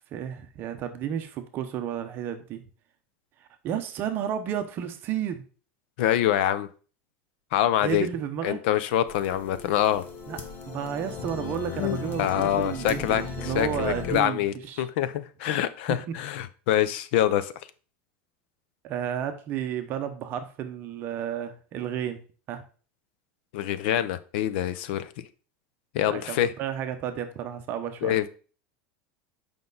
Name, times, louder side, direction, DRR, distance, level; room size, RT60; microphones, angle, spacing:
voice 1, 0.1-2.6 3.6-5.4 7.8-8.6 10.3-10.4 10.7-14.4 14.7-14.8 15.9-16.0 18.8-22.2 22.5-22.6 26.1-28.2, right 9 dB, 35° right, 7 dB, 0.9 m, -32 dB
voice 2, 6.0-6.7 7.5-8.1 8.4-10.0 11.8-17.5 23.5-25.3 25.9-26.5 28.0-28.4, left 11 dB, 60° left, 14 dB, 0.7 m, -25 dB
sound 1, 9.1-14.2, left 5 dB, 30° left, 1.1 m, -37 dB
7.9 x 5.3 x 4.0 m, 0.38 s
supercardioid pair, 165°, 6 cm